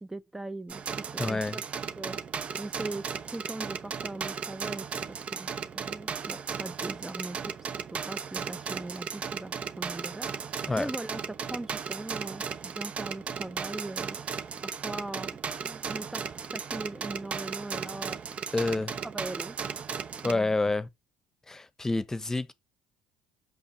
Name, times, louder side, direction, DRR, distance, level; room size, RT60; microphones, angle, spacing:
voice 1, 0.0-1.6 2.0-2.2 2.6-5.5 5.7-7.5 7.9-10.5 10.8-15.4 15.6-18.4 18.7-19.6 20.2-20.5, right 2 dB, 10° right, 0.7 m, -40 dB
sound 1, 0.7-20.3, right 6 dB, 45° right, 1.0 m, -36 dB
voice 2, 1.2-1.6 10.7-10.9 18.5-19.0 20.2-20.9 21.5-22.5, left 2 dB, 15° left, 1.1 m, -28 dB
6.3 x 5.7 x 7.1 m
hypercardioid pair, 65°, 3 cm